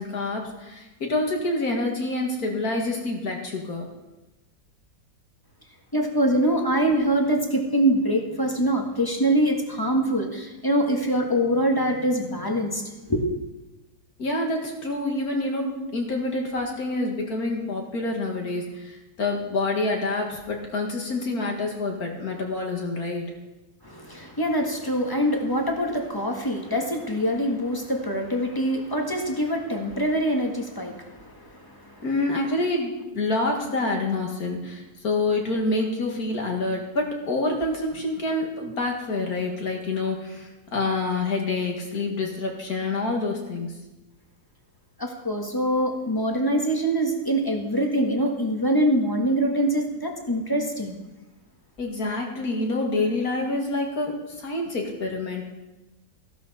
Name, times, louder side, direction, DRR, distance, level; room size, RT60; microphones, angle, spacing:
voice 1, 0.0-3.9 14.2-23.2 32.0-43.7 51.8-55.4, left 2 dB, 55° left, 1 dB, 2.5 m, -27 dB
voice 2, 5.9-13.2 23.8-32.0 45.0-51.0, right 1 dB, 15° left, 2 dB, 1.4 m, -24 dB
15.5 x 11.5 x 4.2 m, 1.1 s
omnidirectional pair, 1.9 m